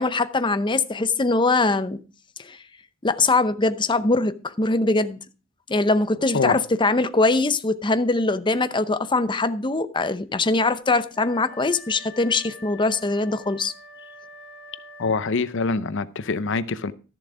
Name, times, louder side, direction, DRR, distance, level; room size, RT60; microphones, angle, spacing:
voice 1, 0.0-2.0 2.4-2.6 3.0-5.2 5.7-13.7, left 3 dB, 25° left, 0.7 m, -22 dB
Wind instrument woodwind instrument, 11.1-15.6, left 2 dB, 75° right, 4.2 m, -45 dB
voice 2, 15.0-16.9, left 4 dB, 60° left, 0.7 m, -24 dB
13.5 x 7.1 x 5.0 m
head